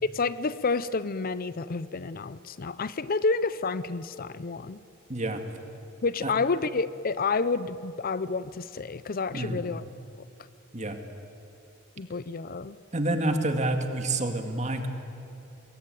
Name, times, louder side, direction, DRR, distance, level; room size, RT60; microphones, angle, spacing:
voice 1, 0.0-4.8 6.0-9.8 12.0-12.8, left 4 dB, 45° left, 16 dB, 0.6 m, -29 dB
voice 2, 5.1-5.4 6.2-6.3 9.3-9.6 10.7-11.0 12.9-14.9, right 2 dB, 35° right, 6 dB, 2.2 m, -28 dB
27.0 x 22.0 x 9.3 m, 2.7 s
head